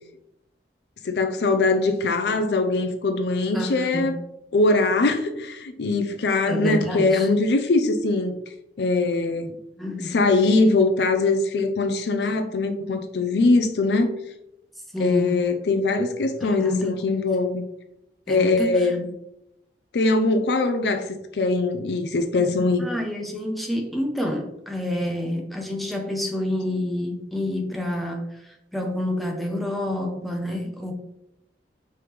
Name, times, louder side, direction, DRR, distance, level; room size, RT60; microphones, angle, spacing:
voice 1, 1.0-4.2 4.5-8.4 8.8-9.5 10.0-14.1 15.0-17.6 18.3-19.1 19.9-22.9, left 3 dB, 70° left, 7 dB, 0.4 m, -22 dB
voice 2, 3.5-4.2 6.5-7.3 9.8-10.1 14.9-15.5 16.6-17.3 18.3-18.9 22.8-28.4 28.7-30.9, left 1 dB, ahead, 2 dB, 0.6 m, -28 dB
4.8 x 3.4 x 3.0 m, 0.84 s
head